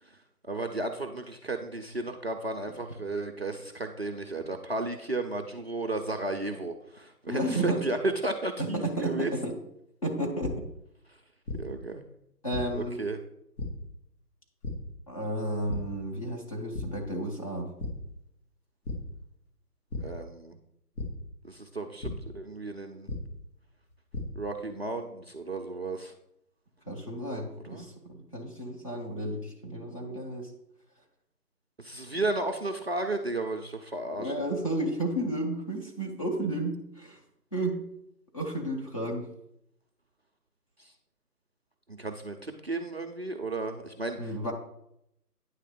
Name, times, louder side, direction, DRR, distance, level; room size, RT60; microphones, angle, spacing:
voice 1, 0.4-9.3 11.1-11.2 11.5-12.0 12.7-13.2 20.0-20.6 21.4-23.1 24.4-26.1 27.6-27.9 31.8-34.3 40.8-40.9 41.9-44.5, right 2 dB, 40° right, 3 dB, 0.5 m, -34 dB
voice 2, 7.3-7.8 8.6-9.5 10.0-10.6 12.4-13.0 15.1-17.7 26.9-30.5 34.2-37.2 37.5-37.7 38.3-39.3 44.2-44.5, right 1 dB, 20° left, -2 dB, 0.9 m, -32 dB
sound 1, 10.4-10.5 11.5-11.6 12.5-12.6 13.6-13.7 14.6-14.7 15.7-15.8 16.2-16.4 16.7-16.8 17.8-17.9 18.8-19.0 19.9-20.0 21.0-21.1 22.0-22.1 23.1-23.2 23.9-24.2, left 2 dB, 65° left, 2.2 m, -34 dB
9.2 x 3.3 x 6.5 m, 0.78 s
figure-of-eight pair, 160°, 48 cm